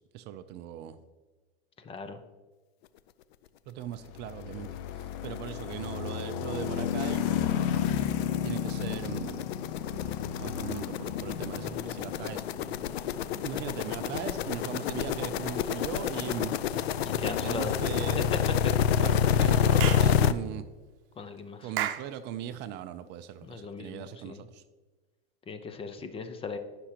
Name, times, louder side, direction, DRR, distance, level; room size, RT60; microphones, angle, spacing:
voice 1, 0.1-1.0 3.7-7.3 8.4-9.4 10.4-12.4 13.4-16.7 17.2-18.3 19.0-20.6 21.6-24.6, right 11 dB, 35° right, 10 dB, 0.5 m, -39 dB
voice 2, 1.8-2.2 17.0-17.9 18.2-18.3 21.2-21.7 23.4-24.4 25.5-26.6, left 5 dB, 20° left, 9 dB, 0.6 m, -38 dB
sound 1, 4.0-17.2, left 9 dB, 60° left, 0.8 m, -34 dB
sound 2, 4.9-5.0 5.4-5.5 5.7-20.3, left 8 dB, 85° left, 0.6 m, -28 dB
Clapping / Chirp tweet, 19.8-20.1 21.8-22.1, right 12 dB, 65° right, 0.8 m, -31 dB
15.0 x 6.0 x 2.9 m, 1.3 s
supercardioid pair, 125°, 31 cm